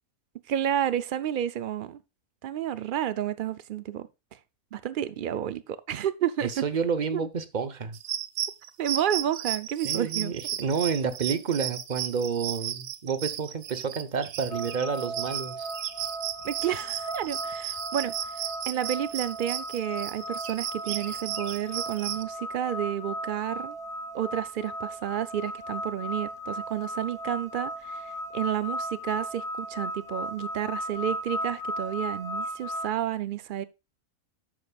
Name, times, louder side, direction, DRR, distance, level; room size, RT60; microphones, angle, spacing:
voice 1, 0.5-2.0 2.4-4.1 4.7-6.6 7.1-7.3 8.8-10.3 16.4-23.8 24.1-33.6, right 10 dB, 90° right, 0.4 m, -31 dB
voice 2, 6.4-8.0 9.8-15.7, right 6 dB, 35° right, 0.8 m, -29 dB
sound 1, 7.9-22.2, right 10 dB, 70° right, 1.1 m, -35 dB
sound 2, 14.5-32.9, equal, ahead, 1.1 m, -36 dB
11.0 x 8.1 x 2.4 m
omnidirectional pair, 1.6 m